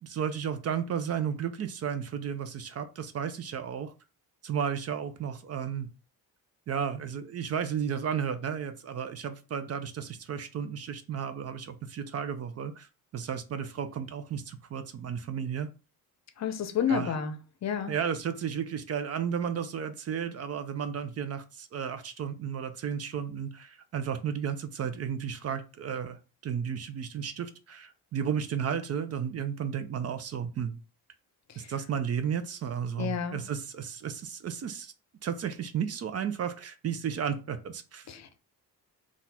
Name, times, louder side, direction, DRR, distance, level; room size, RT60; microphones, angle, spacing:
voice 1, 0.0-3.9 4.4-5.9 6.7-15.7 16.9-17.1 17.9-30.8 31.6-34.9 35.2-38.1, right 7 dB, 45° right, 0.5 m, -33 dB
voice 2, 16.4-17.3 17.6-17.9 31.5-31.7 33.0-33.4 38.1-38.4, left 7 dB, 50° left, 0.6 m, -30 dB
4.0 x 2.4 x 4.1 m
cardioid pair, 120°, 36 cm